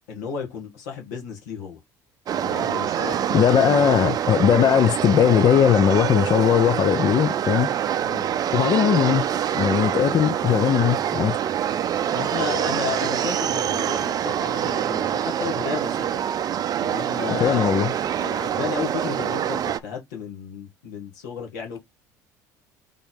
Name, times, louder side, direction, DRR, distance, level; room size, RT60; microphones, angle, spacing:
voice 1, 0.1-1.8 2.4-3.9 8.0-8.3 12.1-16.2 16.8-17.7 18.2-21.8, left 6 dB, 80° left, 1.6 m, -33 dB
sound 1, 2.3-19.8, right 10 dB, 45° right, 0.5 m, -25 dB
voice 2, 3.1-7.7 8.5-9.2 9.5-11.4 17.4-17.9, left 9 dB, 45° left, 0.5 m, -19 dB
3.8 x 3.5 x 3.7 m
hypercardioid pair, 70°, 9 cm